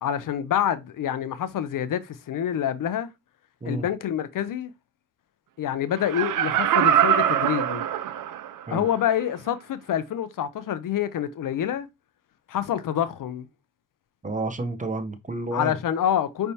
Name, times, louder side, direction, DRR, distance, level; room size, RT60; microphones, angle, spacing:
voice 1, 0.0-3.1 3.6-4.7 5.6-7.8 8.7-11.9 12.5-13.5 15.5-16.5, left 10 dB, 75° left, 0.6 m, -27 dB
Laughter, 6.0-8.6 9.1-9.2, right 10 dB, 70° right, 0.5 m, -23 dB
voice 2, 14.2-15.8, right 2 dB, 25° right, 0.7 m, -30 dB
5.3 x 3.4 x 2.8 m
cardioid pair, 75°, 33 cm